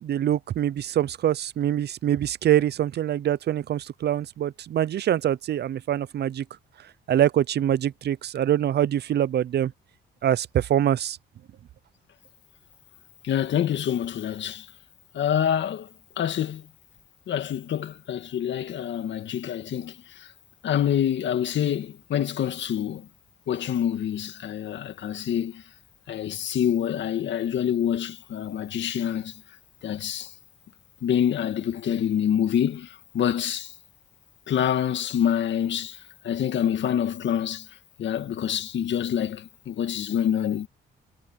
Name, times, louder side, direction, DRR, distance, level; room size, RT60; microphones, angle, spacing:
voice 1, 0.0-6.4 7.1-9.7 10.2-11.2, right 11 dB, 55° right, 0.6 m, -24 dB
voice 2, 13.2-14.7 15.1-15.9 16.2-16.6 17.3-20.0 20.6-23.1 23.5-25.6 26.1-29.3 29.8-30.3 31.0-32.9 33.1-33.7 34.5-36.0 36.2-37.7 38.0-40.7, left 9 dB, 65° left, 2.0 m, -26 dB
cardioid pair, 90°, 20 cm